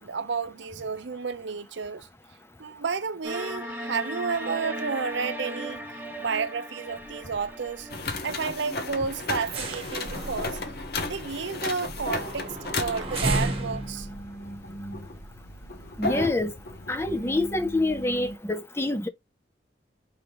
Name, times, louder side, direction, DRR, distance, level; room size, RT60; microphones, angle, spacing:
voice 1, 0.0-2.1 2.6-7.9 8.2-10.6 11.1-14.1, right 5 dB, 70° right, 0.6 m, -31 dB
sound 1, 3.2-10.2, right 1 dB, 10° right, 0.8 m, -38 dB
sound 2, 7.0-7.5 7.7-7.9 8.3-8.5 8.9-15.6 16.1-16.2, right 2 dB, 30° right, 1.2 m, -33 dB
sound 3, 7.9-18.4, left 2 dB, 55° left, 0.9 m, -35 dB
voice 2, 16.0-16.5 16.9-19.1, left 2 dB, 15° left, 0.5 m, -26 dB
4.8 x 3.5 x 2.9 m
head